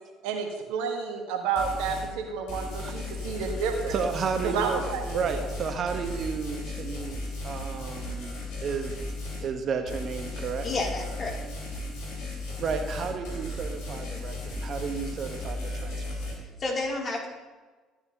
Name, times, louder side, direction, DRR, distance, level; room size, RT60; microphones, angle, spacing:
voice 1, 0.2-4.0 4.4-5.3, right 6 dB, 75° right, 3 dB, 1.4 m, -30 dB
sound 1, 1.6-2.1 2.5-9.5 9.9-16.3, left 1 dB, 75° left, 3.2 m, -35 dB
voice 2, 3.9-4.7 5.1-7.2 7.4-8.3 8.6-9.0 9.4-10.7 12.6-16.0, right 5 dB, 50° right, 6 dB, 1.1 m, -32 dB
voice 3, 10.6-11.3 16.6-17.3, left 2 dB, 40° left, -2 dB, 2.8 m, -30 dB
13.5 x 8.7 x 2.9 m, 1.3 s
hypercardioid pair, 60°, 0 cm